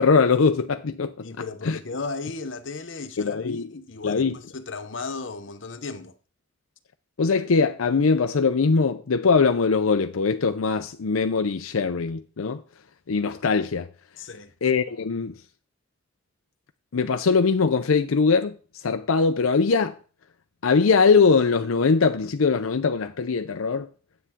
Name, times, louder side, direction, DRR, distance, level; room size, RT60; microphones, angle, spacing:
voice 1, 0.0-1.3 1.6-1.8 3.2-3.7 4.0-4.4 7.2-12.6 13.1-13.9 14.6-15.3 16.9-18.6 18.8-20.0 20.6-23.9, left 4 dB, 90° left, 0.6 m, -21 dB
voice 2, 1.2-6.1 14.2-14.5, left 3 dB, 65° left, 0.9 m, -35 dB
9.9 x 8.1 x 3.6 m
head